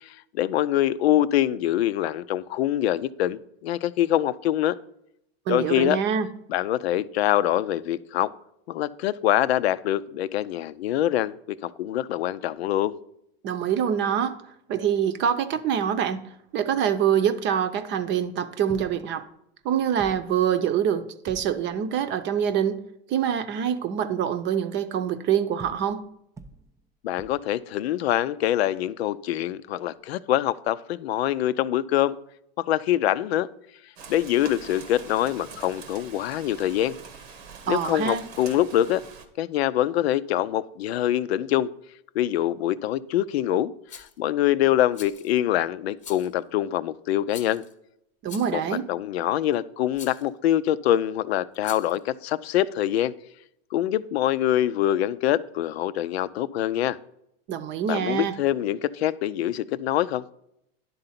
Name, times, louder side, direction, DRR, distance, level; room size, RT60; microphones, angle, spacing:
voice 1, 0.0-4.8 5.5-6.0 6.5-8.3 8.7-13.0 27.0-32.1 32.6-33.5 34.1-37.0 37.7-39.0 39.4-41.7 42.2-47.6 48.5-53.1 53.7-57.0 57.9-60.2, left 12 dB, 85° left, 0.5 m, -24 dB
voice 2, 5.5-6.3 13.4-14.4 14.7-16.2 16.5-19.3 19.6-22.8 23.1-26.0 37.7-38.2 48.2-48.9 57.5-58.4, right 8 dB, 35° right, 0.7 m, -25 dB
sound 1, 18.7-19.2 19.6-19.7 20.0-20.5 21.3-21.8 25.6-26.1 26.4-26.8 27.2-27.6 30.0-30.1, right 4 dB, 10° right, 0.4 m, -46 dB
Rain, 34.0-39.3, right 5 dB, 85° right, 1.3 m, -44 dB
Rattle, 43.9-44.2 44.9-45.4 46.0-46.4 47.3-47.7 48.3-48.7 49.9-50.3 51.5-52.0, left 7 dB, 25° left, 0.8 m, -43 dB
10.5 x 3.9 x 5.7 m
supercardioid pair, 120°, 30 cm